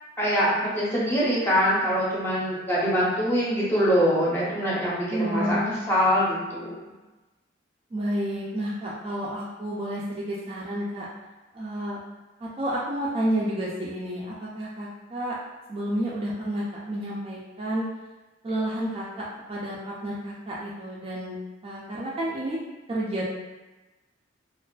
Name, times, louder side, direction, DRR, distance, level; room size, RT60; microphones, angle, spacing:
voice 1, 0.2-5.6 5.9-6.8, equal, 10° left, -8 dB, 0.6 m, -24 dB
voice 2, 5.1-5.7 7.9-11.1 11.5-12.0 12.4-15.4 15.7-17.9 18.4-21.4 21.6-22.6 22.9-23.3, right 1 dB, 30° right, -6 dB, 0.3 m, -30 dB
2.3 x 2.3 x 2.2 m, 1.1 s
head